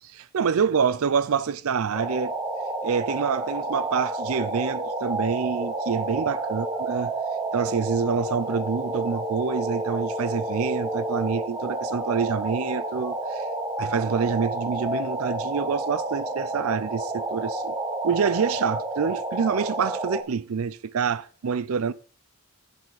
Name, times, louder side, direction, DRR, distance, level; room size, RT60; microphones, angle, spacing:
voice 1, 0.1-2.3 2.8-7.1 7.5-13.4 13.8-17.7 18.0-21.9, right 6 dB, 70° right, 0.5 m, -26 dB
sound 1, 1.9-20.2, right 2 dB, 15° right, 1.0 m, -30 dB
10.5 x 7.1 x 4.0 m
head